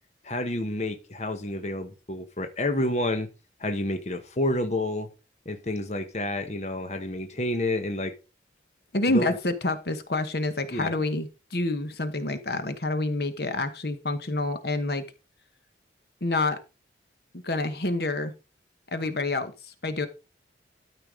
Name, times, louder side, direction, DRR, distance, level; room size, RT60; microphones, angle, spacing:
voice 1, 0.2-3.3 3.6-5.1 5.4-8.1 9.1-9.3 10.7-10.9, left 1 dB, 40° left, 1.1 m, -29 dB
voice 2, 8.9-15.0 16.2-16.6 17.4-18.3 18.9-20.1, left 2 dB, 60° left, 1.1 m, -28 dB
12.5 x 4.5 x 5.0 m
head